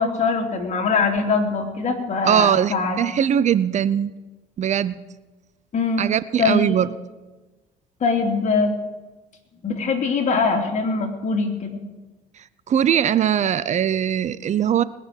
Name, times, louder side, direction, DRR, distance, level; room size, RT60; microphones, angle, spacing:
voice 1, 0.0-3.0 5.7-6.1 6.4-6.8 8.0-8.7 9.6-11.8, left 4 dB, 45° left, 2 dB, 3.2 m, -22 dB
voice 2, 2.2-4.1 4.6-5.0 6.0-6.9 12.7-14.8, right 9 dB, 45° right, 16 dB, 0.6 m, -20 dB
20.0 x 6.7 x 9.6 m, 1.2 s
supercardioid pair, 85°, 16 cm